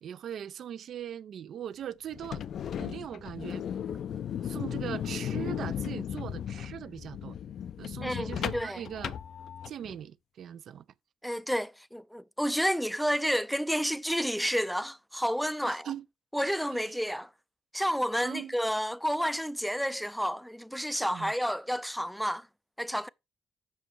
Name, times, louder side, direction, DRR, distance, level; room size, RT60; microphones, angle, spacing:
voice 1, 0.0-2.4 2.8-3.6 4.4-7.4 7.8-9.2 9.7-10.8 15.7-16.1 18.2-18.6 21.1-21.3, right 9 dB, 65° right, 0.4 m, -40 dB
sound 1, 2.1-9.9, left 9 dB, 65° left, 0.5 m, -36 dB
voice 2, 8.0-8.8 11.2-15.9 16.3-17.3 17.7-22.5 22.8-23.1, equal, ahead, 0.4 m, -30 dB
7.1 x 5.4 x 4.4 m
cardioid pair, 90°, 0 cm